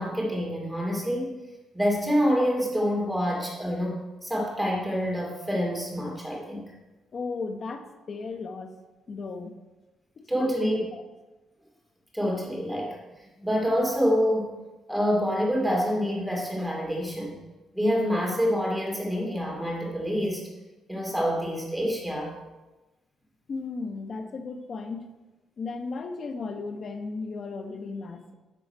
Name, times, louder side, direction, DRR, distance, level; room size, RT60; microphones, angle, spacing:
voice 1, 0.0-1.3 1.7-4.0 4.2-6.7 10.3-10.8 12.1-13.0 13.4-14.6 14.9-17.4 17.7-20.4 20.9-22.4, equal, 5° right, -2 dB, 2.4 m, -27 dB
voice 2, 7.1-8.7 9.1-9.5 10.2-11.0 23.5-25.1 25.6-28.3, left 4 dB, 45° left, 6 dB, 0.9 m, -35 dB
11.0 x 3.9 x 4.5 m, 1.1 s
cardioid pair, 90°, 0 cm